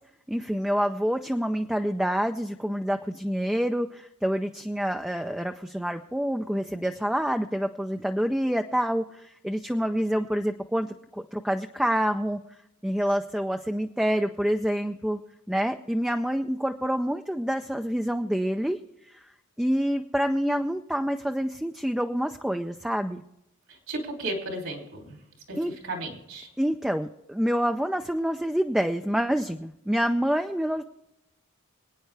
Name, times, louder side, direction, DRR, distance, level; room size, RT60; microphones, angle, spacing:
voice 1, 0.3-12.4 12.8-15.2 15.5-18.8 19.1-19.2 19.6-23.2 25.6-25.7 26.6-30.8, equal, 5° right, 6 dB, 0.4 m, -27 dB
voice 2, 23.9-25.2 25.5-26.5, right 1 dB, 70° right, 2 dB, 3.0 m, -34 dB
26.0 x 9.2 x 3.3 m, 0.85 s
head